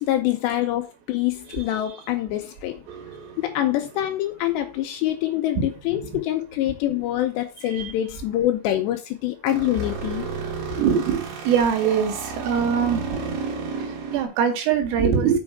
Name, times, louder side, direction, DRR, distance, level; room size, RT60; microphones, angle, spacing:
voice 1, 0.0-2.8 3.4-10.3, left 13 dB, 85° left, 2.6 m, -25 dB
voice 2, 1.5-1.8 5.6-5.7 7.7-7.9 10.7-13.0 13.8-15.4, right 7 dB, 90° right, 4.4 m, -23 dB
sound 1, 2.9-4.5 9.5-14.2, right 5 dB, 60° right, 2.9 m, -33 dB
7.2 x 5.6 x 4.9 m
omnidirectional pair, 5.6 m